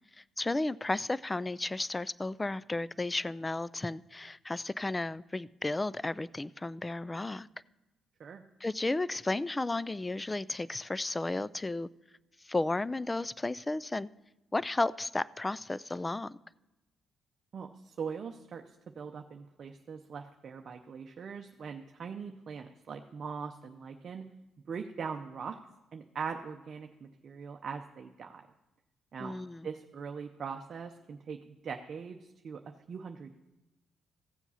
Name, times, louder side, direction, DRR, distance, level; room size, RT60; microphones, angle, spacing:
voice 1, 0.2-7.5 8.6-11.9 12.4-14.1 14.5-16.4 29.2-29.7, left 2 dB, 20° left, 20 dB, 0.3 m, -33 dB
voice 2, 17.5-18.6 18.9-24.2 24.7-25.6 25.9-28.4 29.1-29.4 29.6-32.6 32.9-33.4, right 6 dB, 50° right, 4 dB, 0.7 m, -41 dB
14.5 x 7.2 x 5.6 m, 1.0 s
cardioid pair, 90°, 0 cm